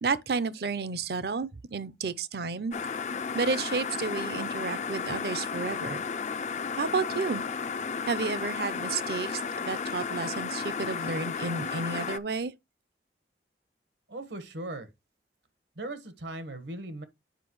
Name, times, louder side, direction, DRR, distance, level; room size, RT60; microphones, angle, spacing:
voice 1, 0.0-2.7 3.3-6.0 6.8-7.5 8.1-12.5, right 4 dB, 60° right, 0.6 m, -31 dB
sound 1, 2.7-12.2, left 5 dB, 40° left, 0.4 m, -33 dB
voice 2, 14.1-14.9 15.8-17.0, right 2 dB, 80° right, 1.3 m, -38 dB
9.1 x 5.2 x 3.0 m
head